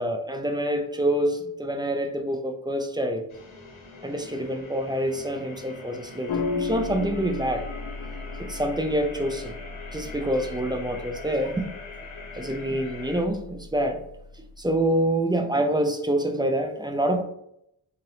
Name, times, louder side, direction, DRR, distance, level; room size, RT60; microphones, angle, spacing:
voice 1, 0.0-3.3 4.0-9.5 9.9-11.7 12.4-14.0 14.6-17.2, right 1 dB, 10° right, 5 dB, 0.3 m, -26 dB
sound 1, 3.3-13.2, left 4 dB, 90° left, 1.0 m, -43 dB
sound 2, 6.3-14.8, left 4 dB, 55° left, 0.5 m, -36 dB
3.8 x 2.8 x 3.2 m, 0.76 s
wide cardioid pair, 110°, 48 cm